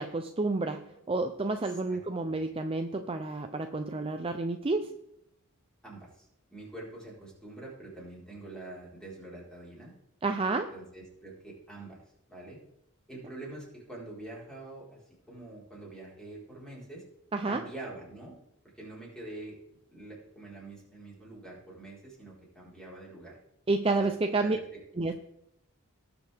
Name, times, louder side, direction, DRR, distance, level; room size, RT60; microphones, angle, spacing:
voice 1, 0.0-4.9 10.2-10.7 17.3-17.6 23.7-24.6 25.0-25.1, right 3 dB, 25° right, 6 dB, 0.5 m, -30 dB
voice 2, 1.6-2.4 5.8-9.9 10.7-12.0 12.3-12.6 13.1-15.0 15.3-17.0 17.5-18.4 18.7-19.6 19.9-23.4 23.9-24.1 24.4-25.1, right 2 dB, 5° left, -5 dB, 4.4 m, -45 dB
18.5 x 6.9 x 3.5 m, 0.78 s
head